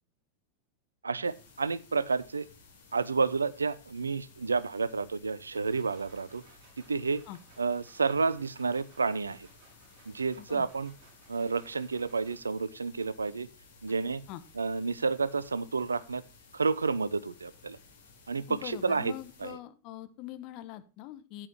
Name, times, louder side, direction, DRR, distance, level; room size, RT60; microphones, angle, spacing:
voice 1, 1.0-2.5 2.9-6.4 6.9-7.2 7.6-9.5 10.1-10.9 11.3-13.5 13.8-14.2 14.5-16.2 16.5-17.8 18.3-19.1 19.4-19.6, right 4 dB, 75° right, 19 dB, 0.6 m, -30 dB
sound 1, 1.2-19.5, left 4 dB, 60° left, 5.0 m, -57 dB
sound 2, 5.3-12.7, right 5 dB, 35° right, 6.0 m, -62 dB
voice 2, 18.5-21.5, left 13 dB, 40° left, 11 dB, 1.2 m, -43 dB
13.5 x 8.9 x 2.9 m, 0.32 s
figure-of-eight pair, 90°, 0 cm